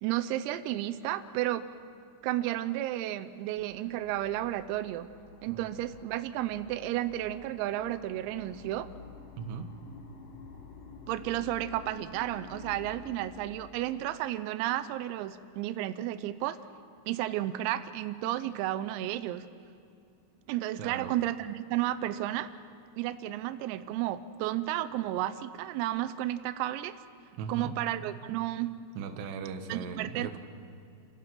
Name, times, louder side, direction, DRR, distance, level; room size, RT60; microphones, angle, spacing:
voice 1, 0.0-1.6 2.2-5.1 5.4-8.9 11.1-16.6 17.1-19.4 20.5-22.5 23.0-27.0 27.5-28.7 29.7-30.4, right 14 dB, 90° right, 11 dB, 3.5 m, -32 dB
sound 1, 3.6-13.4, left 5 dB, 60° left, 2.4 m, -50 dB
voice 2, 5.5-5.8 9.4-9.7 20.8-21.1 27.4-27.8 28.9-30.4, right 6 dB, 70° right, 5 dB, 2.9 m, -38 dB
29.5 x 16.5 x 5.9 m, 2.4 s
omnidirectional pair, 6.0 m